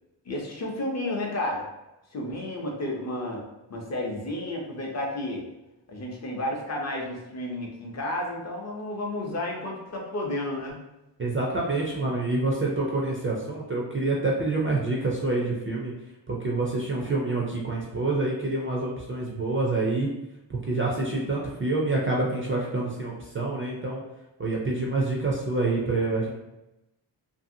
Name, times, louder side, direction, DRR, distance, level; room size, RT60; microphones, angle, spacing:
voice 1, 0.3-1.7 2.1-3.4 3.7-5.4 5.9-10.8, left 1 dB, 40° left, -1 dB, 0.6 m, -32 dB
voice 2, 11.2-15.9 16.3-20.1 20.5-24.0 24.4-26.3, right 2 dB, 30° right, -3 dB, 0.3 m, -27 dB
2.7 x 2.6 x 2.6 m, 0.94 s
wide cardioid pair, 175°, 44 cm